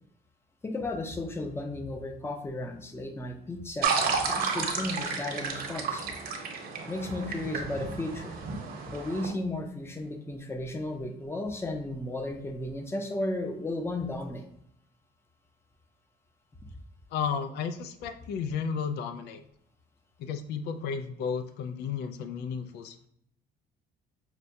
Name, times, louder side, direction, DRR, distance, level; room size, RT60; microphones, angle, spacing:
voice 1, 0.6-6.1 6.9-8.4 8.9-14.4, left 2 dB, 15° left, 4 dB, 0.6 m, -34 dB
sound 1, 3.8-9.3, right 5 dB, 60° right, 0.9 m, -32 dB
voice 2, 17.1-19.4 20.2-23.0, left 6 dB, 75° left, 9 dB, 0.4 m, -33 dB
5.8 x 2.2 x 2.6 m, 0.72 s
cardioid pair, 110°, 17 cm